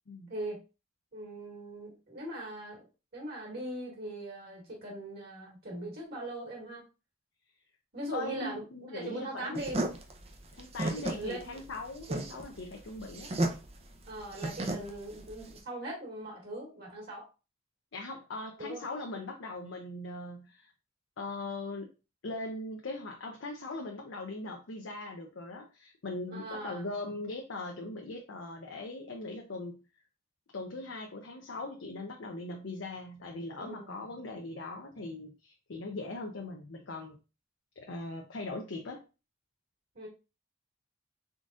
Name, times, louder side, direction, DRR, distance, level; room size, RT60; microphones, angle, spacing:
voice 1, 1.1-2.8 3.1-6.8 7.9-9.8 10.8-11.6 12.1-12.2 14.1-17.3 18.6-18.8 26.3-26.9 33.5-34.0 40.0-40.1, right 1 dB, 50° right, -1 dB, 1.9 m, -40 dB
voice 2, 8.1-9.7 10.5-13.3 17.9-20.7 21.2-21.9 22.2-29.8 30.5-37.2 37.8-39.0, left 2 dB, 65° left, 1 dB, 0.6 m, -40 dB
sound 1, 9.5-15.6, right 1 dB, 30° right, 0.6 m, -34 dB
3.8 x 3.7 x 2.4 m, 0.30 s
head